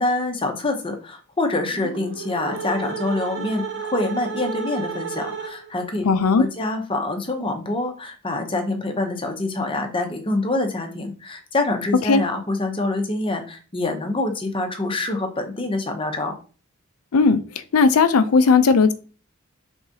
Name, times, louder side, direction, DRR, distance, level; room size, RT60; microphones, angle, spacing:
voice 1, 0.0-16.4, left 2 dB, 25° left, 0.8 m, -26 dB
sound 1, 1.7-5.9, right 5 dB, 60° right, 0.9 m, -32 dB
voice 2, 6.0-6.4 12.1-12.2 17.1-17.4 17.7-18.9, left 4 dB, 85° left, 0.5 m, -16 dB
4.8 x 3.5 x 2.7 m
head